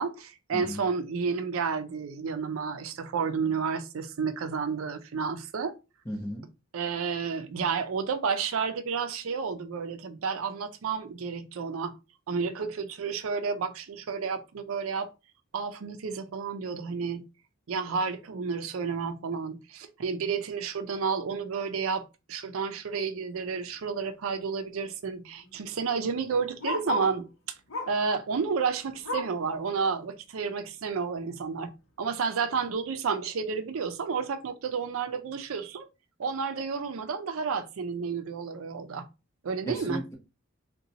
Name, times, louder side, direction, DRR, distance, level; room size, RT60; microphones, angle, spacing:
voice 1, 0.0-5.7 6.7-12.0 12.3-15.1 15.5-17.2 17.7-27.3 27.9-31.7 32.0-35.9 36.2-39.0 39.4-40.0, right 5 dB, 85° right, 0.5 m, -31 dB
voice 2, 6.1-6.4 39.7-40.1, equal, 15° left, 0.8 m, -35 dB
Bark, 23.5-23.7 24.1-24.2 24.4-27.2 27.7-28.1 28.5-29.5 29.9-30.0 30.4-30.5 31.2-31.3, left 1 dB, 80° left, 0.7 m, -36 dB
3.8 x 2.2 x 2.7 m
head